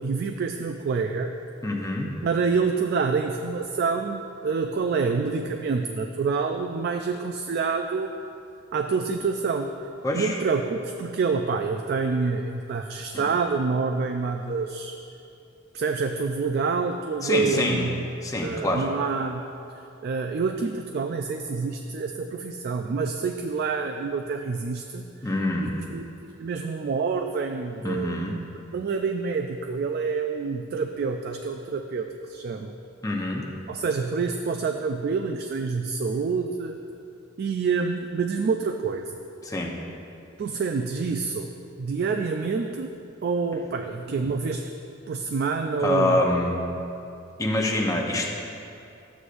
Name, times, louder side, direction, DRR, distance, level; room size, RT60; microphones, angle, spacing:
voice 1, 0.0-1.3 2.2-8.1 8.7-9.7 10.1-14.9 15.7-18.0 18.4-19.4 20.0-25.1 25.6-28.2 28.7-32.7 33.7-36.8 37.4-39.2 40.4-41.5 41.8-42.9 43.2-44.6 45.1-46.2, right 4 dB, 50° right, 5 dB, 0.3 m, -27 dB
voice 2, 1.6-2.1 10.0-10.4 13.1-13.3 17.2-17.8 18.2-18.9 25.2-25.7 27.8-28.4 33.0-33.4 39.4-39.7 45.8-46.6 47.4-48.3, left 1 dB, 15° left, -1 dB, 0.8 m, -25 dB
12.5 x 8.1 x 2.5 m, 2.7 s
head